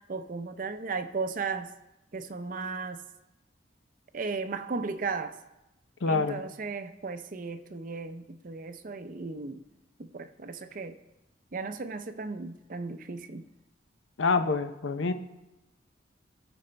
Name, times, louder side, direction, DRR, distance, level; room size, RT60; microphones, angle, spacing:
voice 1, 0.0-1.7 2.1-3.0 4.1-5.4 6.1-9.6 10.0-11.0 11.5-13.5, right 4 dB, 45° right, 10 dB, 0.5 m, -35 dB
voice 2, 6.0-6.4 14.2-15.1, left 4 dB, 80° left, 10 dB, 0.6 m, -26 dB
17.5 x 6.2 x 3.3 m, 0.96 s
head